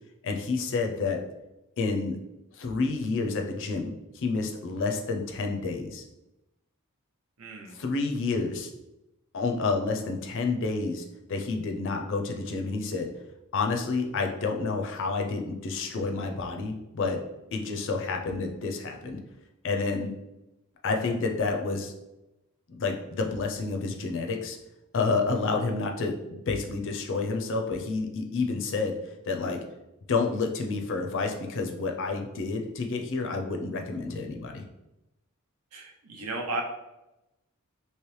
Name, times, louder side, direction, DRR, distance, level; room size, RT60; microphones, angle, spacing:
voice 1, 0.2-1.2 1.8-2.2 2.5-6.0 7.7-8.7 9.3-13.1 13.5-17.2 17.5-19.2 19.6-20.1 20.8-21.9 22.7-24.6 24.9-29.0 29.3-29.6 30.1-34.7, left 4 dB, 60° left, 3 dB, 0.5 m, -29 dB
voice 2, 7.4-7.7 35.7-36.6, right 2 dB, 85° right, 2 dB, 0.7 m, -34 dB
3.2 x 2.9 x 3.1 m, 0.94 s
head